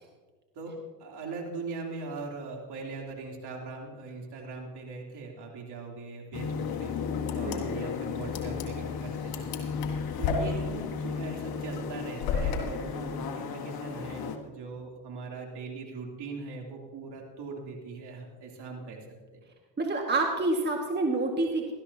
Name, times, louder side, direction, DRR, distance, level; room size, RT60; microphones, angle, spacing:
voice 1, 0.5-6.9 7.3-9.8 10.2-19.0, right 4 dB, 55° right, 0 dB, 3.3 m, -40 dB
sound 1, 6.3-14.4, left 6 dB, 45° left, 1.6 m, -34 dB
sound 2, 7.2-12.6, left 6 dB, 65° left, 2.4 m, -34 dB
voice 2, 19.8-21.7, right 2 dB, 20° right, 1 dB, 1.9 m, -28 dB
18.0 x 13.0 x 2.9 m, 1.3 s
supercardioid pair, 80°, 49 cm